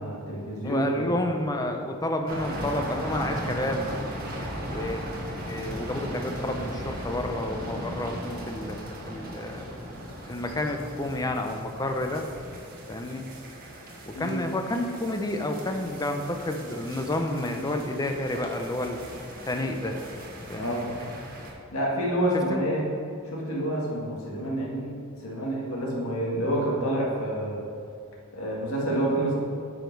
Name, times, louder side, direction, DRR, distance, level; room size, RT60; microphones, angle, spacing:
voice 1, 0.0-1.1 6.0-6.1 14.1-14.4 20.6-20.9 21.7-22.9 23.3-27.6 28.3-29.4, right 1 dB, 75° left, -3 dB, 1.8 m, -28 dB
voice 2, 0.6-3.9 4.7-5.0 5.5-8.8 9.1-9.6 10.2-12.3 12.9-13.3 14.1-19.1 19.4-20.0 20.5-21.1 22.5-22.6, left 1 dB, 15° left, 4 dB, 0.6 m, -30 dB
sound 1, 2.3-21.5, equal, 45° right, 1.2 m, -38 dB
8.9 x 5.1 x 4.6 m, 2.4 s
head